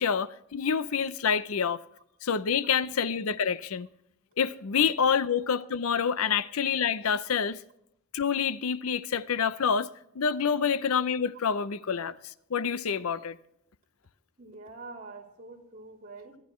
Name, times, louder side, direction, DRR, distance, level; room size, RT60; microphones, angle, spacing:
voice 1, 0.0-1.8 2.2-3.9 4.4-7.6 8.1-9.9 10.2-12.1 12.5-13.4, left 6 dB, 80° left, 0.6 m, -27 dB
voice 2, 14.4-16.4, right 3 dB, 35° right, 3.2 m, -46 dB
23.5 x 10.5 x 3.1 m
head